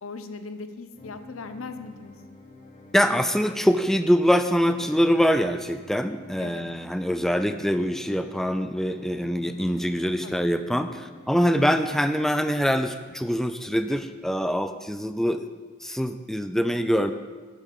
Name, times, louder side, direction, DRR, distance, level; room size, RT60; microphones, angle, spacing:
voice 1, 0.0-2.1 6.4-6.7 10.2-10.5, left 4 dB, 85° left, 10 dB, 0.7 m, -39 dB
sound 1, 0.9-12.9, left 2 dB, 35° left, 1.4 m, -49 dB
voice 2, 2.9-15.5 15.8-17.1, equal, ahead, 9 dB, 0.3 m, -24 dB
8.5 x 8.2 x 5.5 m, 1.4 s
head